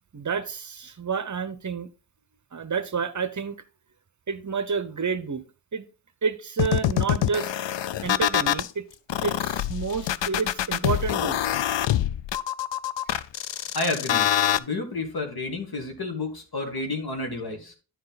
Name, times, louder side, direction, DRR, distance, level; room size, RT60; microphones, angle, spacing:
voice 1, 0.1-1.9 2.5-3.6 4.3-5.4 5.7-5.9 6.2-7.5 8.0-8.9 9.2-11.4, right 5 dB, 40° right, 0.8 m, -29 dB
sound 1, 6.6-8.7 9.1-14.6, left 12 dB, 80° left, 0.5 m, -25 dB
voice 2, 13.7-14.3 14.6-17.7, left 2 dB, 55° left, 2.3 m, -30 dB
11.0 x 4.7 x 4.0 m
wide cardioid pair, 120°, 43 cm